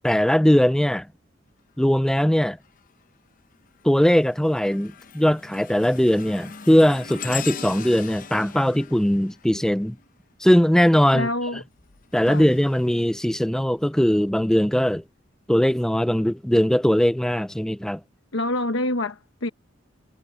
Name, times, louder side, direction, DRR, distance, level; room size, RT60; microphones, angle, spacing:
voice 1, 0.0-1.1 1.8-2.6 3.8-10.0 10.4-11.3 12.1-15.0 15.5-18.0, equal, 5° left, 0.3 m, -20 dB
sound 1, 2.6-3.0 3.5-10.3 11.6-13.8 14.4-14.6 15.5-15.6, left 7 dB, 45° left, 0.8 m, -40 dB
voice 2, 11.1-11.6 12.3-12.5 18.3-19.5, left 1 dB, 85° left, 1.1 m, -26 dB
head